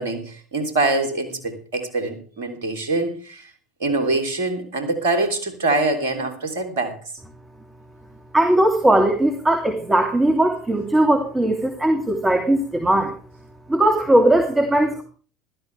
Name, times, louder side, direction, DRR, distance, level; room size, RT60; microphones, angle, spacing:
voice 1, 0.0-3.5 3.8-7.0, right 2 dB, 70° right, 8 dB, 3.5 m, -24 dB
voice 2, 8.3-13.1 13.7-15.0, right 1 dB, 15° right, 4 dB, 2.9 m, -18 dB
16.5 x 13.0 x 3.5 m, 0.41 s
figure-of-eight pair, 65°, 0 cm